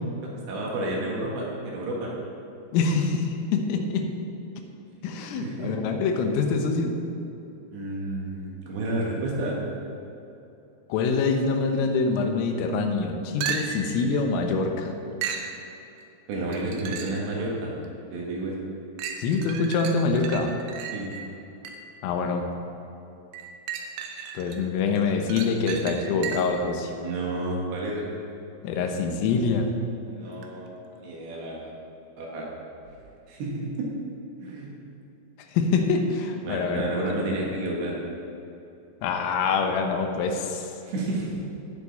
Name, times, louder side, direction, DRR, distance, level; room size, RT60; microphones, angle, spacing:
voice 1, 0.2-2.2 5.4-5.8 7.7-9.6 16.3-17.7 18.1-18.5 20.9-21.1 27.0-28.1 30.1-31.7 32.2-32.5 33.3-33.9 34.4-34.7 36.4-37.9 40.8-41.4, right 2 dB, 65° right, -3 dB, 3.4 m, -31 dB
voice 2, 2.7-4.1 5.0-7.0 10.9-14.9 19.2-20.5 22.0-22.5 24.4-26.9 28.6-29.7 35.5-36.8 37.3-37.4 39.0-40.7, left 4 dB, 85° left, 4 dB, 3.5 m, -25 dB
sound 1, 13.4-14.0 15.2-15.5 16.5-17.3 17.8-17.9 19.0-22.0 23.3-24.6 25.0-26.7 30.4-30.5, right 7 dB, 90° right, 2.3 m, -35 dB
17.5 x 7.3 x 4.1 m, 2.9 s
omnidirectional pair, 5.8 m